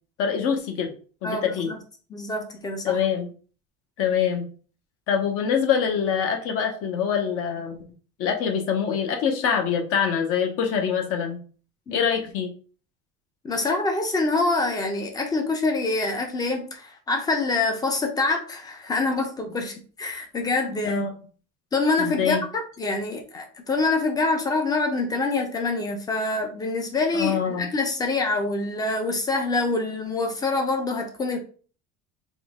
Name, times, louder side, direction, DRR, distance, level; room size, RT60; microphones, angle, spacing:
voice 1, 0.2-0.9 1.2-1.7 2.8-3.3 4.0-4.5 5.1-7.8 8.2-11.4 11.9-12.5 20.9-21.1 22.0-22.4 27.1-27.7, left 7 dB, 50° left, 4 dB, 0.8 m, -24 dB
voice 2, 1.2-1.8 2.1-3.0 11.9-12.1 13.4-21.1 21.7-31.4, left 3 dB, 15° left, 4 dB, 0.5 m, -26 dB
3.7 x 3.0 x 3.6 m, 0.40 s
cardioid pair, 180°, 31 cm